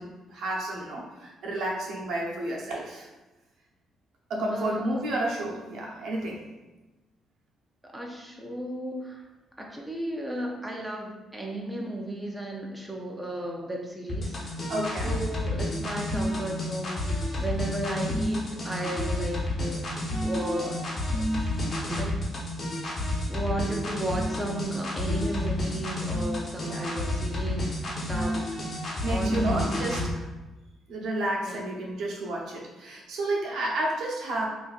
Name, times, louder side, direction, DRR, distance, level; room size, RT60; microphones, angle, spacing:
voice 1, 0.0-3.1 4.3-6.4 14.7-15.2 25.7-25.8 26.6-26.9 29.0-30.2 30.9-34.5, right 1 dB, 75° right, -2 dB, 0.9 m, -31 dB
voice 2, 4.5-5.0 7.8-9.3 9.6-14.6 15.0-19.8 20.2-20.8 21.9-22.2 23.3-27.7 28.1-28.4 29.1-30.0 31.5-31.6, right 1 dB, 10° right, -1 dB, 0.6 m, -34 dB
sound 1, 14.1-30.1, left 1 dB, 40° left, 1.1 m, -30 dB
4.3 x 2.6 x 2.4 m, 1.1 s
cardioid pair, 85°, 0 cm